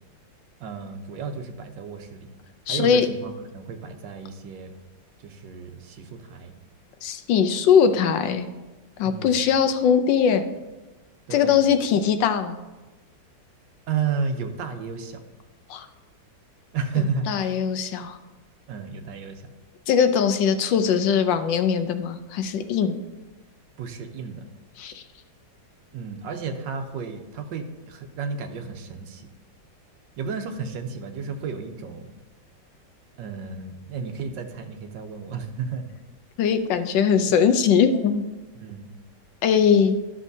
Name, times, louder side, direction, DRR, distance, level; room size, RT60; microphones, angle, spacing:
voice 1, 0.6-2.3 2.7-4.7 5.2-6.5 9.0-9.4 11.3-11.6 13.9-15.2 16.7-17.6 18.7-19.4 23.8-24.4 25.9-29.3 30.2-32.1 33.2-35.9 38.5-38.9, right 5 dB, 75° right, 6 dB, 1.4 m, -32 dB
voice 2, 2.7-3.1 7.0-8.5 9.0-10.4 11.3-12.6 15.7-15.9 17.3-18.2 19.9-23.0 24.8-25.0 36.4-38.2 39.4-40.0, left 7 dB, 75° left, 9 dB, 1.3 m, -21 dB
12.5 x 6.2 x 2.7 m, 1.1 s
omnidirectional pair, 2.1 m